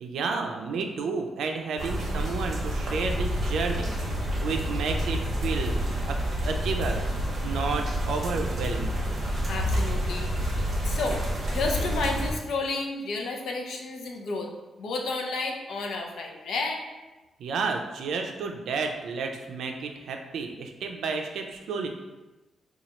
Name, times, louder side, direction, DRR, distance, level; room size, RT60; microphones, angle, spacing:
voice 1, 0.0-5.7 6.0-8.9 17.4-21.9, right 4 dB, 90° right, 4 dB, 0.4 m, -31 dB
sound 1, 1.8-12.3, equal, 45° right, 0.7 m, -28 dB
voice 2, 9.4-11.3 11.5-14.5 14.8-16.8, left 3 dB, 75° left, 2 dB, 0.5 m, -31 dB
4.2 x 2.3 x 2.9 m, 1.1 s
wide cardioid pair, 165°, 0 cm